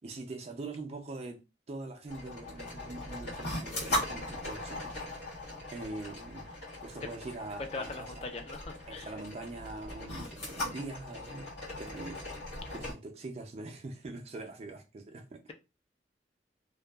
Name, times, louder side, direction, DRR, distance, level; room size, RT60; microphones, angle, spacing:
voice 1, 0.0-5.0 5.7-6.5 6.8-8.2 8.9-11.5 11.8-12.2 12.7-15.5, right 2 dB, 35° right, 0.4 m, -43 dB
sound 1, 2.1-12.9, left 1 dB, 75° left, 1.5 m, -39 dB
voice 2, 7.7-9.1, left 3 dB, 35° left, 0.4 m, -41 dB
2.6 x 2.3 x 2.2 m
head